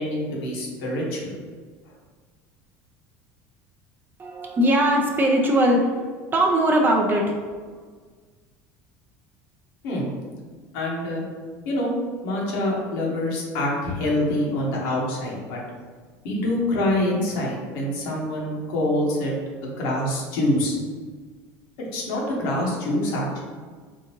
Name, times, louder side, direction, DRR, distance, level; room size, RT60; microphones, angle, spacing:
voice 1, 0.0-1.4 9.8-10.1 10.7-11.2 11.6-11.9 12.2-15.6 16.2-19.3 19.6-20.8 21.9-23.4, left 1 dB, 75° left, -4 dB, 1.2 m, -25 dB
voice 2, 4.2-7.7, right 1 dB, 25° right, 1 dB, 0.5 m, -21 dB
3.7 x 2.5 x 2.9 m, 1.5 s
supercardioid pair, 100°, 8 cm